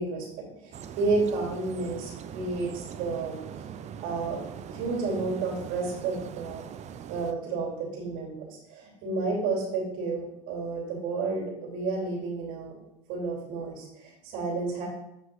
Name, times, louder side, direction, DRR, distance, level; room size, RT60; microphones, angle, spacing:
voice 1, 0.0-3.4 4.0-4.4 4.7-6.6 7.1-12.8 13.1-14.9, right 3 dB, 65° right, -2 dB, 3.1 m, -31 dB
sound 1, 0.7-7.3, right 8 dB, 45° right, 0.7 m, -41 dB
7.7 x 5.6 x 3.8 m, 0.84 s
hypercardioid pair, 75°, 16 cm